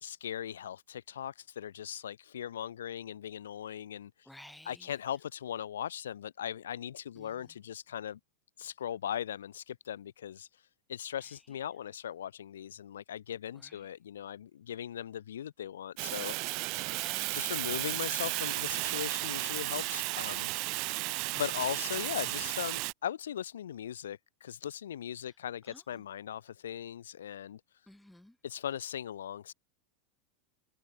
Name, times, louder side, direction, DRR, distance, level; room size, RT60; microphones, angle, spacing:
voice 1, 0.0-4.3 4.6-8.2 8.6-16.6 17.3-20.8 21.3-27.6 28.4-29.5, left 10 dB, 85° left, 0.4 m, -39 dB
voice 2, 4.3-4.9 7.2-7.3 13.6-13.7 16.8-17.4 20.6-21.2 25.7-25.8 27.9-28.3, left 1 dB, 5° left, 0.8 m, -54 dB
Fire, 16.0-22.9, right 30 dB, 55° right, 0.4 m, -34 dB
hypercardioid pair, 105°, 0 cm